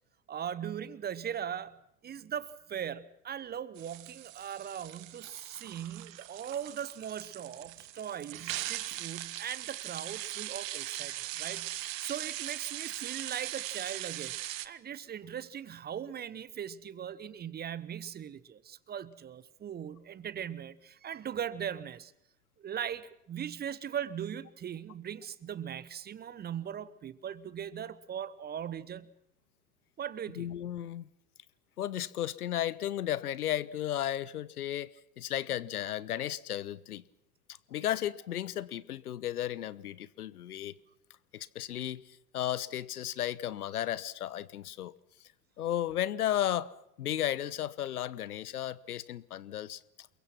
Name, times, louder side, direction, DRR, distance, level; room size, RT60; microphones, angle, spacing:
voice 1, 0.3-22.1 22.6-29.1 30.0-30.5, right 9 dB, 20° right, 1.0 m, -39 dB
sound 1, 3.8-14.7, right 15 dB, 55° right, 1.5 m, -40 dB
voice 2, 30.4-31.1 31.8-34.9 35.2-37.0 37.7-40.7 41.3-42.0 42.3-44.9 45.6-49.8, left 12 dB, 70° left, 1.1 m, -34 dB
28.5 x 22.5 x 5.9 m
figure-of-eight pair, 85°, 46 cm